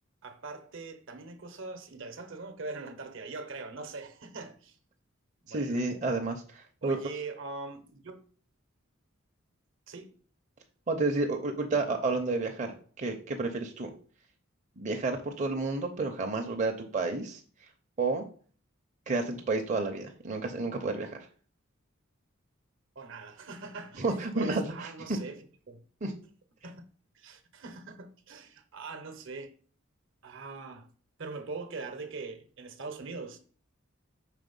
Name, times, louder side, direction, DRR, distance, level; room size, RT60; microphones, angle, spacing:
voice 1, 0.2-4.8 5.4-5.8 6.8-8.2 9.9-10.1 22.9-25.8 26.6-26.8 27.1-29.5 30.2-30.9 31.2-33.4, right 4 dB, 65° right, 0.8 m, -42 dB
voice 2, 5.5-7.0 10.9-12.7 13.0-13.9 14.8-17.4 18.0-18.3 19.1-21.2 24.0-25.2 26.0-26.1, right 3 dB, 35° right, 0.6 m, -31 dB
4.9 x 3.8 x 5.3 m
head